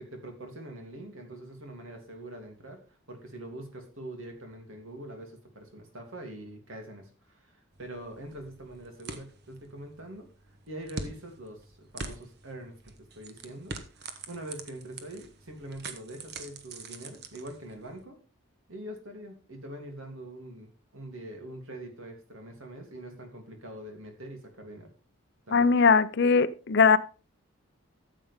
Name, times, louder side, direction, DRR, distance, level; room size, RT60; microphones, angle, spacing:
voice 1, 0.0-2.8 3.1-10.3 10.7-18.2 18.7-24.9 25.5-25.7, right 1 dB, 75° right, 2.9 m, -44 dB
sound 1, 7.7-18.0, right 3 dB, 50° right, 1.2 m, -45 dB
voice 2, 25.5-27.0, left 5 dB, 55° left, 0.6 m, -20 dB
13.0 x 7.6 x 3.6 m
head